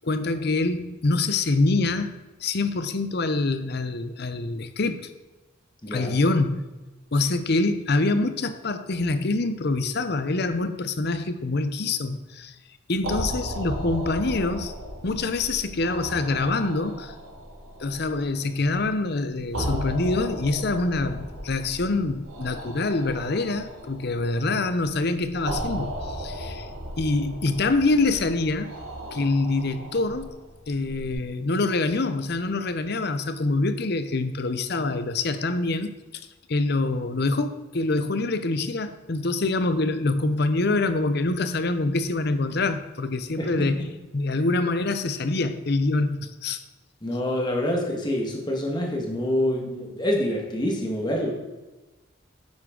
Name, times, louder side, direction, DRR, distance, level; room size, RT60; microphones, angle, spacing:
voice 1, 0.0-5.1 5.9-6.6 7.1-12.5 12.9-14.7 15.0-17.1 17.8-26.7 27.0-28.7 29.1-30.3 30.7-36.2 36.5-43.9 44.1-46.6, left 2 dB, 50° left, 11 dB, 0.7 m, -25 dB
voice 2, 5.8-6.1 43.4-43.7 47.0-51.3, left 1 dB, 20° left, 0 dB, 1.6 m, -26 dB
sound 1, 12.9-31.1, equal, 75° right, 2.1 m, -36 dB
9.7 x 8.0 x 3.8 m, 1.1 s
head